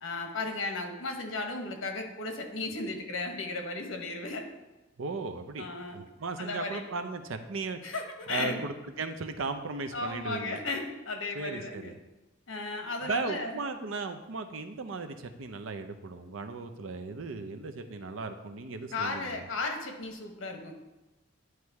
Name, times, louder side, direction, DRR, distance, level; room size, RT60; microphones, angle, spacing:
voice 1, 0.0-4.4 5.6-6.0 6.4-6.8 7.8-8.6 9.9-11.9 12.5-13.6 18.9-20.7, left 3 dB, 80° left, 4 dB, 1.1 m, -35 dB
voice 2, 5.0-7.8 8.3-10.6 11.3-11.9 13.0-19.4, right 3 dB, 85° right, 7 dB, 0.6 m, -36 dB
9.6 x 3.2 x 4.7 m, 1.1 s
head